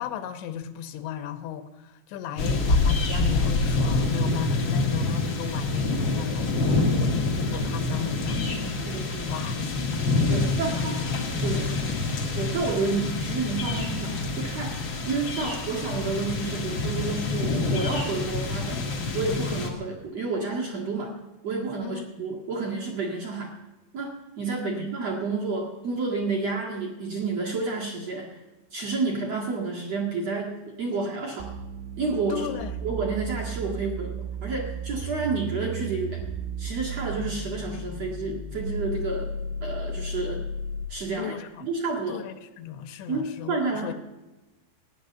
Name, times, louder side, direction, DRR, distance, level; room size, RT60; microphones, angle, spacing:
voice 1, 0.0-8.4 8.7-8.9 9.3-9.9 10.7-10.8 11.5-12.0 15.4-15.6 21.8-22.1 24.6-24.9 32.3-32.9 41.2-41.7 42.1-43.9, left 9 dB, 85° left, 9 dB, 3.1 m, -36 dB
sound 1, 2.4-19.7, left 3 dB, 55° left, 1.3 m, -26 dB
voice 2, 8.9-9.3 10.3-10.9 11.4-11.9 12.4-21.2 21.4-23.5 23.9-28.4 28.7-31.5 32.0-32.5 32.8-36.2 36.6-39.3 39.6-40.4 40.9-41.3 41.6-42.2 43.1-43.9, right 3 dB, 45° right, -2 dB, 2.3 m, -30 dB
sound 2, 31.4-41.0, right 2 dB, 70° right, 3.2 m, -34 dB
15.5 x 10.0 x 7.1 m, 1.1 s
omnidirectional pair, 5.2 m